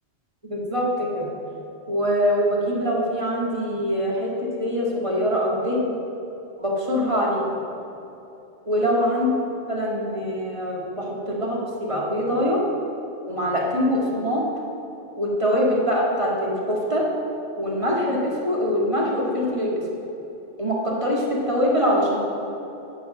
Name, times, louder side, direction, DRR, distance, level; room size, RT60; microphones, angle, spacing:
voice 1, 0.4-1.2 1.9-6.0 6.6-7.4 8.7-9.3 9.7-12.6 13.3-14.4 15.2-17.0 17.6-19.8 20.6-22.2, equal, 30° right, -4 dB, 1.9 m, -23 dB
10.0 x 5.8 x 6.1 m, 3.0 s
omnidirectional pair, 1.1 m